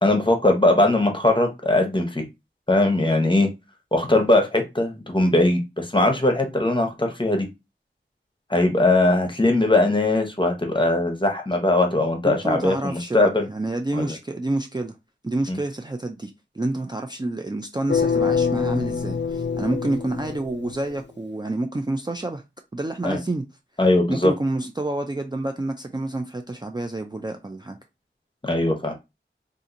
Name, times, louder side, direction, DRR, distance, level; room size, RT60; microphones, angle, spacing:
voice 1, 0.0-2.2 2.7-3.5 3.9-7.5 8.5-13.5 13.9-14.1 15.5-15.6 23.0-23.2 23.8-24.3 28.4-28.9, left 2 dB, 25° left, 0.9 m, -20 dB
voice 2, 12.2-14.9 15.2-22.4 22.7-23.4 24.1-27.8, right 2 dB, 20° right, 0.4 m, -28 dB
sound 1, 17.9-20.9, left 5 dB, 60° left, 0.5 m, -25 dB
2.8 x 2.5 x 3.7 m
wide cardioid pair, 45°, 21 cm